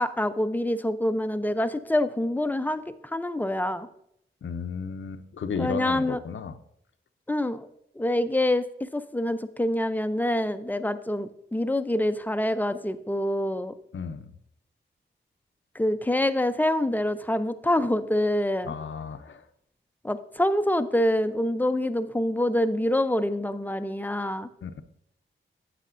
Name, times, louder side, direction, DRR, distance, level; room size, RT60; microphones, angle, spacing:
voice 1, 0.0-2.8 3.1-3.9 5.6-6.2 7.3-7.7 8.0-8.6 8.9-13.7 15.8-18.7 20.0-24.5, left 1 dB, 10° left, 11 dB, 0.5 m, -26 dB
voice 2, 4.4-6.5 13.9-14.3 18.6-19.4 24.6-24.8, left 6 dB, 65° left, 9 dB, 0.6 m, -34 dB
9.8 x 8.3 x 2.5 m, 0.73 s
cardioid pair, 75°, 21 cm